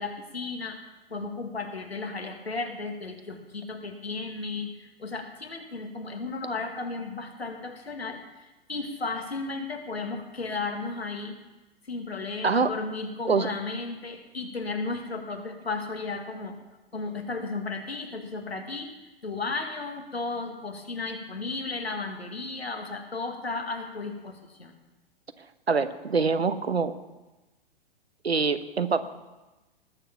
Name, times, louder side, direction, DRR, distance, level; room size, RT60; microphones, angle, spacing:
voice 1, 0.0-11.4 11.8-16.5 16.9-18.9 19.2-24.7, left 3 dB, 85° left, 4 dB, 2.1 m, -34 dB
voice 2, 25.7-26.9 28.2-29.0, right 5 dB, 85° right, 11 dB, 1.2 m, -24 dB
19.5 x 6.8 x 7.3 m, 1.1 s
figure-of-eight pair, 110°, 31 cm